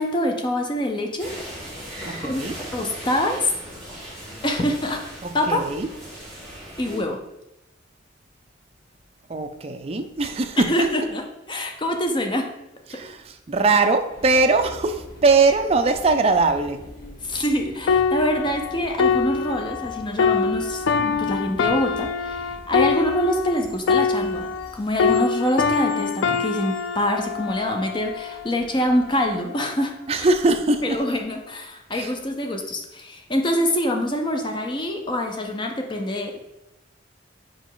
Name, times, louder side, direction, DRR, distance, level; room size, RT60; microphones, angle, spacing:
voice 1, 0.0-1.3 2.2-3.5 4.4-5.6 6.8-7.2 10.7-12.5 12.9-13.0 17.2-30.3 30.8-36.4, left 1 dB, 25° left, 4 dB, 0.6 m, -25 dB
sound 1, 1.2-7.0, equal, ahead, 2.1 m, -38 dB
voice 2, 2.1-2.6 5.2-5.9 9.3-10.9 12.9-16.8 30.1-31.0 32.0-32.1, right 3 dB, 30° right, 6 dB, 0.4 m, -21 dB
sound 2, 14.1-29.4, left 1 dB, 50° left, 1.2 m, -45 dB
sound 3, 17.9-24.7 25.0-28.6 29.2-29.4, left 5 dB, 85° left, 0.4 m, -24 dB
5.2 x 4.7 x 3.8 m, 0.92 s
head